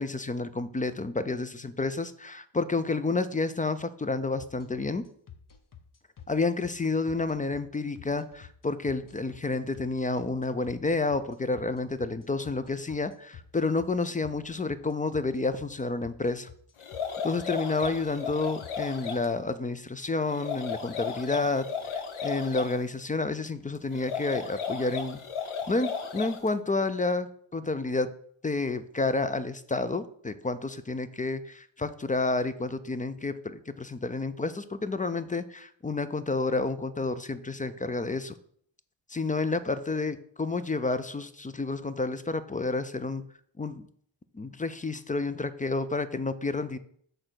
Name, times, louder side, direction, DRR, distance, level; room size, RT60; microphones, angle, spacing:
voice 1, 0.0-5.0 6.3-16.5 17.2-25.2 25.7-28.1 28.4-38.3 39.1-43.2 43.6-43.9 44.3-46.8, left 3 dB, 20° left, 13 dB, 0.3 m, -30 dB
sound 1, 4.4-18.7, left 8 dB, 40° left, 0.9 m, -49 dB
sound 2, 16.8-19.3 20.3-22.8 23.9-26.5, left 6 dB, 80° left, 1.0 m, -35 dB
6.5 x 3.9 x 6.1 m, 0.62 s
wide cardioid pair, 100°, 49 cm